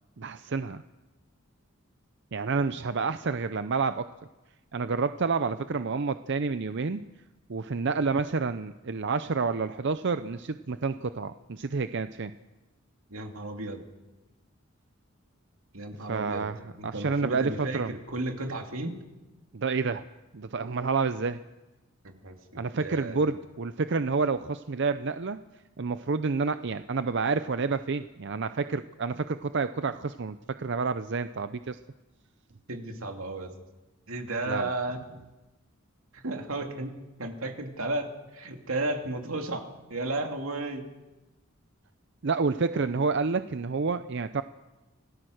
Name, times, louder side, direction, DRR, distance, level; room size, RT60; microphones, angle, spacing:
voice 1, 0.2-0.8 2.3-4.1 4.7-7.1 7.5-12.3 16.1-17.9 19.5-20.1 20.3-21.4 22.5-25.4 25.8-31.8 34.5-34.7 42.2-44.4, right 4 dB, 60° right, 11 dB, 0.6 m, -29 dB
voice 2, 13.1-13.8 15.7-16.5 16.8-19.0 22.0-23.2 32.7-33.5 34.1-35.0 36.1-40.8, right 2 dB, 90° right, 4 dB, 2.6 m, -34 dB
26.5 x 18.0 x 6.5 m, 1.1 s
head